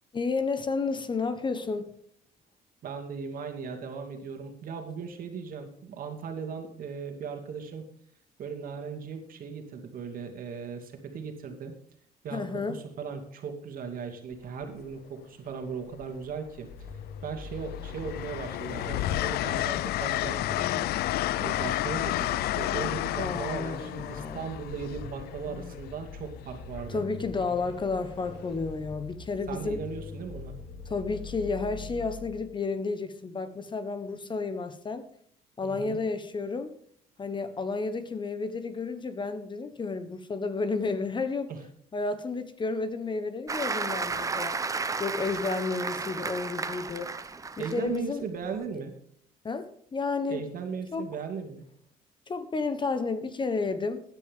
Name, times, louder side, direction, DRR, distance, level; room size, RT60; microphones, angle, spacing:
voice 1, 0.1-1.9 12.3-12.8 23.2-24.5 26.9-29.8 30.9-35.1 35.6-36.7 37.2-41.5 41.9-44.6 45.0-47.1 47.6-48.3 49.4-50.4 50.9-51.1 52.3-54.0, left 4 dB, 30° left, 11 dB, 1.1 m, -31 dB
voice 2, 2.8-7.9 8.4-11.7 12.2-16.7 17.2-27.0 29.5-30.6 35.6-36.0 41.5-41.6 47.6-48.9 50.3-51.6, right 5 dB, 55° right, 4 dB, 2.5 m, -37 dB
Train, 14.3-14.6 15.9-16.7 17.1-25.8 27.4-27.7, left 16 dB, 70° left, 0.4 m, -31 dB
Vehicle, 16.7-32.6, left 5 dB, 85° left, 2.2 m, -42 dB
Applause, 43.5-48.0 48.4-48.6, right 4 dB, 20° right, 0.8 m, -33 dB
15.5 x 9.9 x 3.7 m, 0.66 s
cardioid pair, 110°, 17 cm